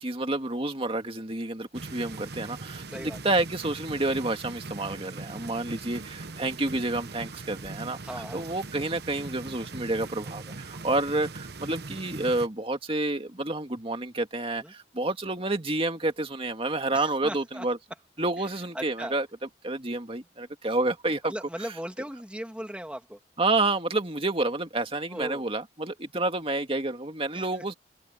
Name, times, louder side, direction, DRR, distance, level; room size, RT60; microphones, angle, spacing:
voice 1, 0.0-17.8 18.2-19.3 19.6-21.3 23.4-27.7, right 2 dB, 30° right, 2.2 m, -29 dB
sound 1, 1.7-12.5, right 3 dB, 60° right, 1.1 m, -41 dB
voice 2, 2.9-3.2 8.0-8.4 14.6-14.7 16.9-17.7 18.7-19.2 21.2-23.2 25.1-25.4 27.3-27.4, equal, 5° right, 2.2 m, -38 dB
open air
head